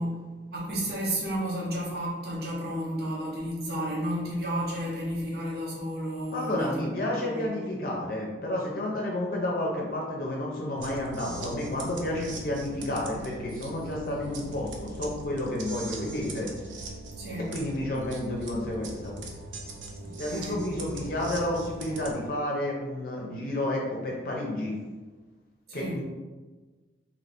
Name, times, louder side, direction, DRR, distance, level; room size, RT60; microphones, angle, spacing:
voice 1, 0.0-7.5 17.2-17.5 20.0-20.6 25.7-26.0, equal, 55° right, -5 dB, 0.9 m, -32 dB
voice 2, 6.3-16.5 17.4-19.2 20.2-24.8 25.7-26.0, left 1 dB, 50° left, -2 dB, 0.6 m, -31 dB
sound 1, 10.8-22.1, right 2 dB, 90° right, 0.6 m, -40 dB
3.2 x 2.8 x 4.2 m, 1.3 s
head